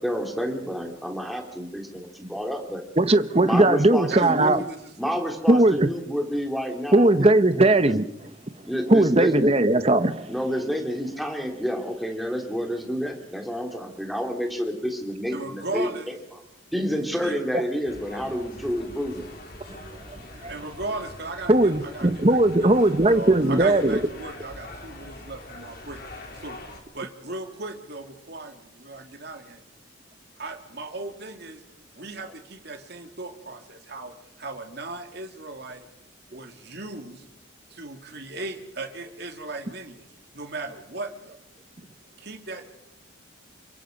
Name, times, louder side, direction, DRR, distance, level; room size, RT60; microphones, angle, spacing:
voice 1, 0.0-2.8 3.4-4.6 5.0-7.9 8.6-9.6 10.3-16.4 16.7-19.3, equal, ahead, 3.1 m, -29 dB
voice 2, 3.0-4.6 5.5-5.9 6.9-8.0 8.9-10.3 19.7-20.0 20.4-20.5 21.5-24.0, right 2 dB, 30° right, 1.0 m, -19 dB
voice 3, 4.1-5.2 15.3-16.1 16.9-17.3 20.3-26.0 26.3-26.6 26.9-29.6 30.4-31.6 31.9-34.1 34.4-35.9 36.3-37.2 37.7-40.1 40.3-41.4 42.2-42.6, right 3 dB, 50° right, 2.8 m, -37 dB
sound 1, 17.8-26.8, left 1 dB, 45° left, 4.2 m, -43 dB
28.5 x 24.0 x 5.3 m
head